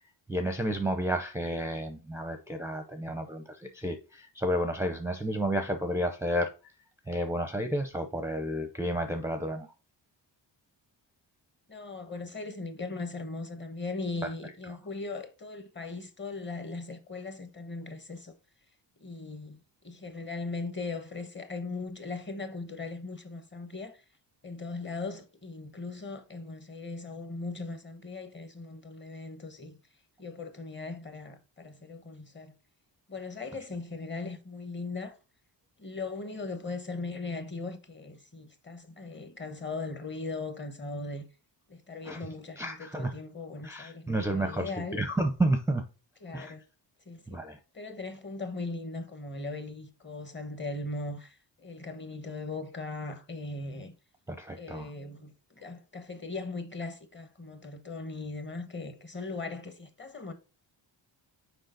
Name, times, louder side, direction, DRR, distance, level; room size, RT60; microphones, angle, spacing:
voice 1, 0.3-6.5 7.1-9.7 42.0-42.2 42.6-43.1 43.6-45.8 46.3-46.5 47.3-47.6 54.3-54.9, right 1 dB, 5° right, 0.6 m, -31 dB
voice 2, 11.7-18.3 19.0-19.6 19.8-24.0 24.4-29.8 30.2-32.5 33.1-35.2 35.8-41.3 41.7-45.0 46.2-46.6 47.1-47.4 47.7-53.9 54.5-60.3, left 3 dB, 25° left, 1.1 m, -39 dB
6.5 x 4.9 x 3.9 m
wide cardioid pair, 145°, 45 cm